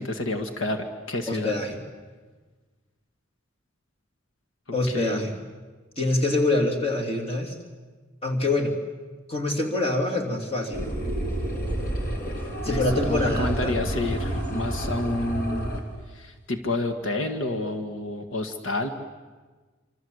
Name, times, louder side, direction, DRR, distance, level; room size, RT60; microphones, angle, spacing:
voice 1, 0.0-1.5 4.9-5.2 12.7-15.7 16.1-18.9, left 2 dB, 80° left, 7 dB, 1.7 m, -29 dB
voice 2, 1.3-1.8 4.7-5.3 6.0-7.6 8.2-8.7 9.3-10.9 12.6-13.7, left 2 dB, 30° left, 2 dB, 3.2 m, -25 dB
sound 1, 10.7-15.8, right 1 dB, 45° left, 3.6 m, -29 dB
sound 2, 11.3-15.2, equal, 10° left, 5.2 m, -41 dB
26.5 x 26.0 x 8.0 m, 1.4 s
head